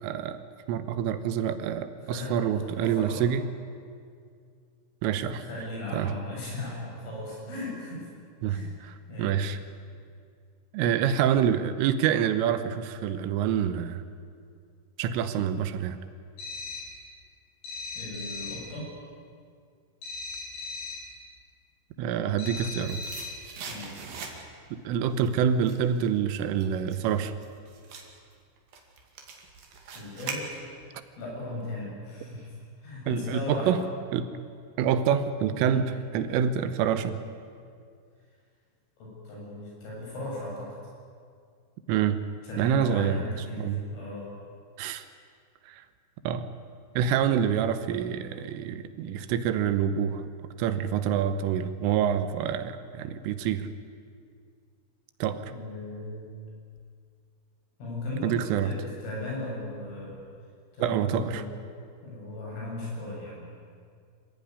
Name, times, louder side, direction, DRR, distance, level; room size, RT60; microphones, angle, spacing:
voice 1, 0.0-0.4 0.7-3.5 5.0-5.4 5.9-6.1 8.4-8.9 9.2-9.6 10.7-14.0 15.0-16.0 22.0-23.0 24.9-27.3 33.1-33.8 34.1-34.3 34.8-37.2 41.9-42.2 42.6-43.2 43.6-43.8 44.8-45.0 45.7-45.8 46.3-46.5 47.0-50.2 50.6-53.7 55.2-55.5 58.2-58.7 60.8-61.4, right 8 dB, 80° right, 11 dB, 3.6 m, -26 dB
voice 2, 2.0-3.2 5.1-8.1 8.5-8.7 9.1-9.4 18.0-18.9 23.6-24.0 29.9-30.6 31.2-32.5 32.8-33.8 35.6-35.8 39.0-40.7 42.4-44.3 55.5-56.3 57.8-60.2 60.7-61.5 62.0-63.4, left 2 dB, 75° left, -3 dB, 10.0 m, -37 dB
sound 1, 16.4-17.0 17.6-18.7 20.0-21.1 22.4-23.5, left 3 dB, 50° left, 7.3 m, -38 dB
sound 2, 22.3-24.7 25.1-31.0 31.3-31.4, right 5 dB, 55° right, 3.7 m, -42 dB
26.5 x 15.5 x 9.7 m, 2.2 s
omnidirectional pair, 5.8 m